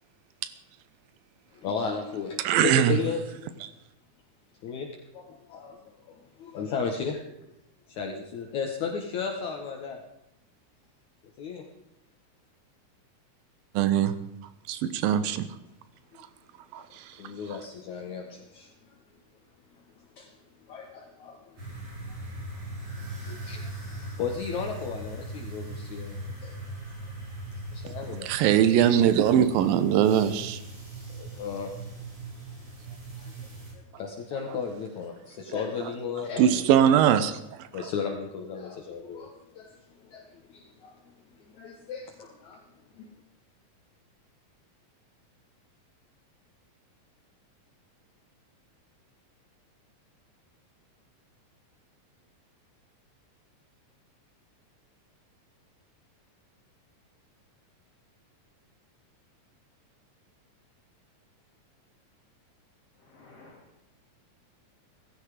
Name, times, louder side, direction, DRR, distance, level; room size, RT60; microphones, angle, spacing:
voice 1, 1.5-3.4 4.6-7.2 7.9-10.0 11.4-11.7 17.2-19.0 20.2-20.3 20.7-21.6 23.1-26.6 27.7-28.3 31.1-31.7 33.2-37.0 37.7-41.0 41.5-42.6 42.9-43.1, left 6 dB, 60° left, 2 dB, 2.6 m, -35 dB
voice 2, 2.4-3.0 13.8-14.1 14.7-15.5 16.7-16.8 28.2-30.6 36.4-37.4, right 10 dB, 90° right, 12 dB, 2.8 m, -21 dB
sound 1, 21.6-33.7, right 2 dB, 55° right, 8.3 m, -39 dB
voice 3, 63.0-63.8, left 2 dB, 45° left, -2 dB, 3.5 m, -53 dB
17.0 x 15.5 x 5.0 m, 0.85 s
omnidirectional pair, 4.0 m